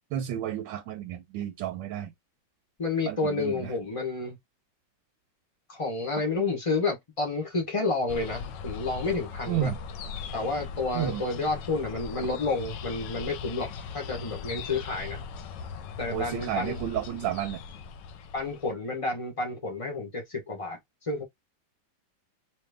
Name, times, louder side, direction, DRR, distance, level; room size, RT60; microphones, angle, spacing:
voice 1, 0.1-2.1 3.1-3.7 9.5-9.8 10.9-11.2 16.1-17.6, right 11 dB, 75° right, 1.2 m, -31 dB
voice 2, 2.8-4.4 5.7-9.7 10.3-15.2 16.0-16.8 18.3-21.2, left 3 dB, 45° left, 0.4 m, -30 dB
sound 1, 8.1-18.7, left 6 dB, 75° left, 1.1 m, -39 dB
3.0 x 2.8 x 3.3 m
omnidirectional pair, 2.2 m